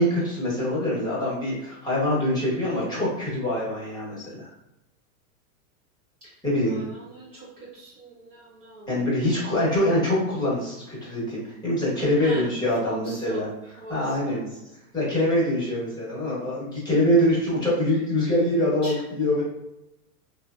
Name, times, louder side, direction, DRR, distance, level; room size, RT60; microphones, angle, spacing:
voice 1, 0.0-4.5 6.4-6.8 8.9-13.5 13.9-14.4 14.9-19.4, left 1 dB, 10° left, -7 dB, 1.0 m, -24 dB
voice 2, 6.7-9.1 12.2-14.8 18.8-19.0, right 1 dB, 30° right, -7 dB, 0.6 m, -41 dB
3.0 x 2.0 x 2.4 m, 0.90 s
supercardioid pair, 145°, 46 cm